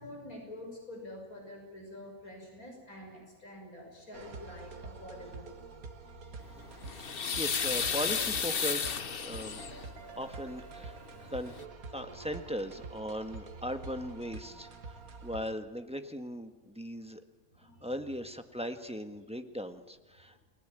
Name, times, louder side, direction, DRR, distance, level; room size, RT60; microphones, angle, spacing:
voice 1, 0.0-5.6 6.7-6.8 11.3-11.4 17.5-17.9, left 1 dB, 80° left, 1 dB, 6.7 m, -47 dB
sound 1, 4.1-15.5, right 4 dB, 75° right, 2.0 m, -47 dB
sound 2, 6.6-9.9 11.1-11.2 11.5-11.6, left 6 dB, 45° left, 1.1 m, -33 dB
voice 2, 7.0-11.6 11.9-17.2 17.6-20.5, equal, 5° right, 7 dB, 1.5 m, -39 dB
30.0 x 20.0 x 9.1 m, 1.3 s
omnidirectional pair, 1.5 m